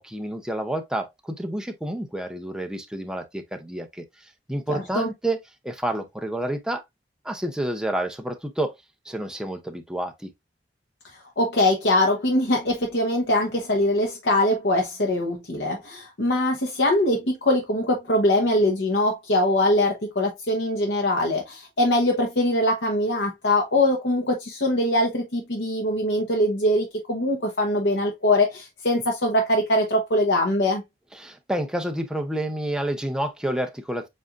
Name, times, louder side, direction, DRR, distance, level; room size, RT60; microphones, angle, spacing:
voice 1, 0.0-4.0 4.5-6.8 7.2-8.7 9.1-10.3 31.1-34.1, right 1 dB, 5° right, 0.7 m, -29 dB
voice 2, 4.7-5.1 11.4-30.8, left 1 dB, 85° left, 1.0 m, -22 dB
7.5 x 2.6 x 2.5 m
head